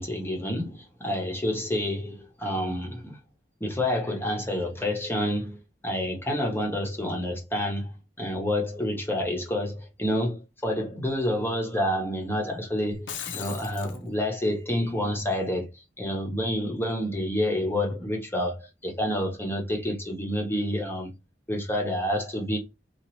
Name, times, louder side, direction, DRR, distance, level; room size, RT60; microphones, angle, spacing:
voice 1, 0.0-3.2 3.6-5.6 5.8-15.7 16.0-21.1 21.5-22.6, left 1 dB, 10° left, 0.8 m, -28 dB
Shatter, 12.9-14.0, left 8 dB, 70° left, 0.5 m, -37 dB
2.9 x 2.4 x 3.0 m
head